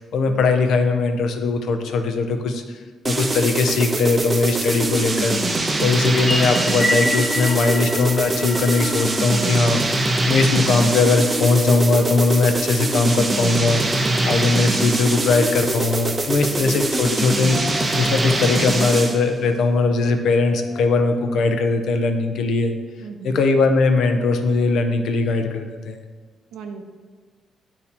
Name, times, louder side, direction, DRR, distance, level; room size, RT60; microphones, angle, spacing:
voice 1, 0.0-2.8 3.1-5.4 5.8-17.6 18.0-22.7 23.2-26.0, left 3 dB, 75° left, 6 dB, 0.6 m, -20 dB
sound 1, 3.1-19.3, right 2 dB, 25° right, 0.6 m, -23 dB
voice 2, 5.7-6.1 14.0-14.4 23.0-23.4 26.5-26.8, right 5 dB, 85° right, 5 dB, 0.6 m, -36 dB
sound 2, 6.1-10.6, equal, 20° left, 0.8 m, -28 dB
sound 3, 17.4-22.3, left 2 dB, 50° left, 0.9 m, -39 dB
8.3 x 2.8 x 4.2 m, 1.5 s
cardioid pair, 90°, 0 cm